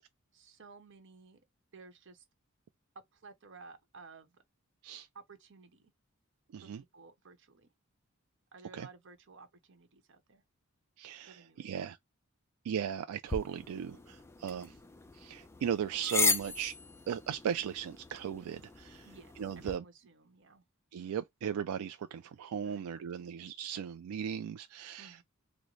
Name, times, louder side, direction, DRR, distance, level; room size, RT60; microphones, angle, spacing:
voice 1, 0.3-1.4 1.7-2.2 3.1-4.4 5.1-5.9 6.6-7.7 8.5-10.4 11.3-11.7 19.0-20.6 22.6-22.9 23.2-23.4 25.0-25.2, right 4 dB, 60° right, 0.9 m, -55 dB
voice 2, 6.5-6.8 8.7-8.9 11.0-12.0 12.6-14.7 15.1-16.8 17.1-19.1 19.4-19.8 20.9-25.2, right 8 dB, 90° right, 0.3 m, -37 dB
sound 1, 13.3-19.8, left 4 dB, 10° left, 0.3 m, -37 dB
3.8 x 2.0 x 3.1 m
head